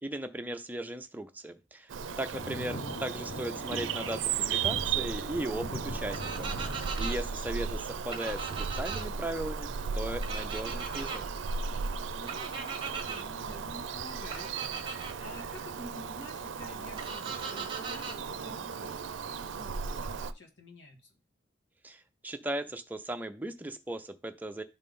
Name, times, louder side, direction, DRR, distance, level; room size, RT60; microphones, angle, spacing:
voice 1, 0.0-11.2 21.8-24.6, right 1 dB, 10° right, 6 dB, 0.5 m, -37 dB
Bird vocalization bird call bird song, 1.9-20.3, right 6 dB, 85° right, 0.4 m, -36 dB
voice 2, 2.0-2.5 12.1-21.2, left 2 dB, 80° left, 1 dB, 2.2 m, -50 dB
sound 1, 2.3-7.8, left 2 dB, 50° left, 0.7 m, -42 dB
sound 2, 6.1-7.2 8.1-9.0 10.2-11.2 12.3-13.2 14.3-15.1 17.0-18.2, right 5 dB, 25° right, 1.1 m, -39 dB
10.5 x 4.1 x 3.7 m, 0.30 s
head